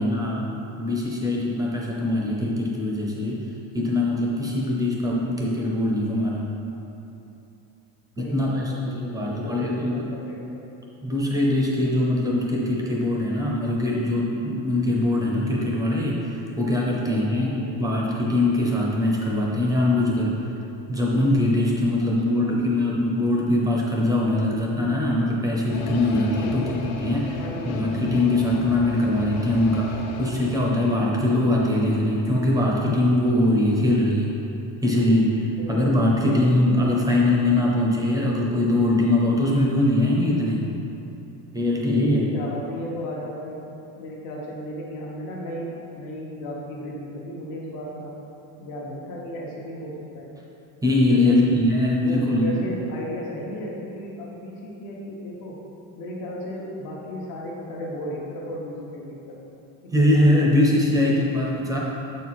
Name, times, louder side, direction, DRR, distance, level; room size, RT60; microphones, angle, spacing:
voice 1, 0.0-3.4 3.7-6.5 8.2-10.1 11.0-20.3 20.9-27.4 27.7-34.3 34.8-40.6 41.5-42.3 50.8-52.6 59.9-61.8, left 1 dB, 10° right, -3 dB, 0.5 m, -22 dB
voice 2, 8.2-10.7 16.9-17.1 17.4-17.9 22.0-22.6 26.4-27.1 27.4-28.2 35.6-36.2 42.1-43.6 43.9-48.2 48.6-50.3 51.1-51.4 52.0-55.6 56.0-59.4 59.8-61.0, equal, 60° left, -3 dB, 1.2 m, -35 dB
sound 1, 25.7-31.1, left 5 dB, 85° left, 0.7 m, -36 dB
7.6 x 4.5 x 4.1 m, 2.9 s
cardioid pair, 170°, 38 cm